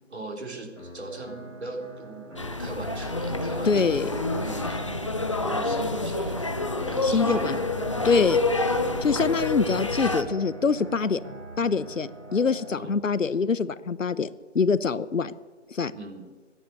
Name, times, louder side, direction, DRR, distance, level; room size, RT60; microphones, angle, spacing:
voice 1, 0.1-4.8 5.4-9.2 12.8-13.0 15.9-16.3, right 2 dB, 60° right, 2 dB, 3.8 m, -40 dB
sound 1, 0.8-12.8, right 1 dB, 90° right, 6.0 m, -41 dB
sound 2, 2.4-10.2, left 2 dB, 25° left, 0.7 m, -28 dB
voice 2, 3.7-4.1 7.0-7.6 8.0-8.4 9.0-11.2 11.6-14.3 14.5-15.3 15.7-15.9, left 5 dB, 90° left, 17 dB, 0.9 m, -24 dB
13.0 x 10.0 x 9.6 m, 1.4 s
figure-of-eight pair, 160°, 37 cm